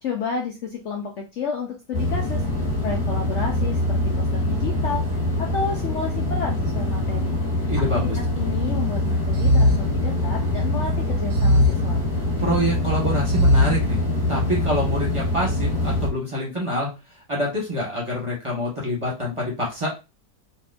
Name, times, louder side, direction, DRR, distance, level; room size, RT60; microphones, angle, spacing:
voice 1, 0.0-7.7 8.2-12.0, left 5 dB, 60° left, 0 dB, 0.8 m, -31 dB
sound 1, 1.9-16.1, left 1 dB, 15° left, 1.6 m, -24 dB
voice 2, 7.6-8.2 12.4-14.0 14.3-16.9 17.3-19.9, equal, 20° right, -4 dB, 1.1 m, -26 dB
sound 2, 7.7-8.7 9.3-10.6 11.3-12.6 13.3-14.4, left 1 dB, 85° right, 1.2 m, -22 dB
4.0 x 2.5 x 2.5 m, 0.28 s
omnidirectional pair, 1.7 m